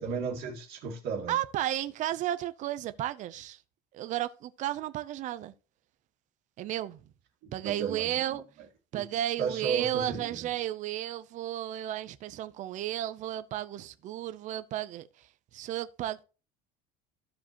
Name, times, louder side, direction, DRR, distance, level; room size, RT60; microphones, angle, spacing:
voice 1, 0.0-1.4 7.4-8.4 8.9-9.1 9.4-10.5, right 6 dB, 60° right, 2.1 m, -34 dB
voice 2, 1.3-3.6 3.9-5.5 6.6-7.0 7.5-8.4 8.9-15.1 15.5-16.2, right 13 dB, 40° right, 0.6 m, -33 dB
15.0 x 5.0 x 3.0 m
cardioid pair, 170°, 18 cm